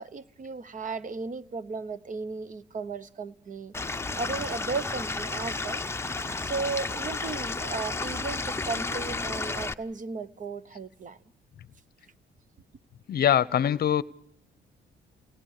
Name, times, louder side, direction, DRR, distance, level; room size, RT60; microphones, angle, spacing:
voice 1, 0.0-5.8 6.4-11.2, right 4 dB, 40° right, 1.0 m, -35 dB
Stream / Liquid, 3.7-9.7, left 3 dB, 15° left, 0.7 m, -32 dB
voice 2, 13.1-14.0, left 10 dB, 50° left, 0.8 m, -23 dB
29.5 x 18.5 x 4.9 m
cardioid pair, 90°, 20 cm